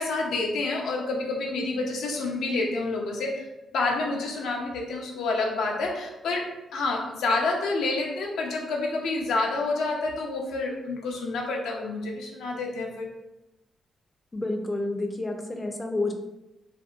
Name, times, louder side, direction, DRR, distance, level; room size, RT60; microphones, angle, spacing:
voice 1, 0.0-13.1, left 3 dB, 85° left, 0 dB, 0.4 m, -28 dB
voice 2, 14.3-16.1, left 2 dB, 20° left, 4 dB, 0.3 m, -29 dB
2.6 x 2.1 x 2.3 m, 0.98 s
cardioid pair, 90°, 0 cm